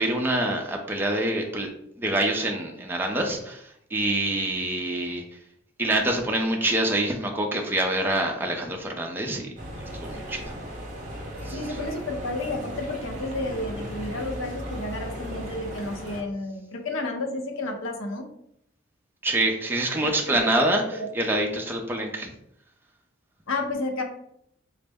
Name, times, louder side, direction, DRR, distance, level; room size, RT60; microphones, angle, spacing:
voice 1, 0.0-1.7 2.0-5.2 5.8-9.5 9.8-10.4 11.4-11.8 19.2-22.3, right 1 dB, 10° right, 1 dB, 0.4 m, -26 dB
sound 1, 9.6-16.2, equal, 40° right, 0.9 m, -36 dB
voice 2, 11.5-18.3 20.0-20.5 20.9-21.1 23.5-24.0, left 2 dB, 75° left, 4 dB, 0.7 m, -31 dB
4.0 x 2.0 x 3.4 m, 0.73 s
head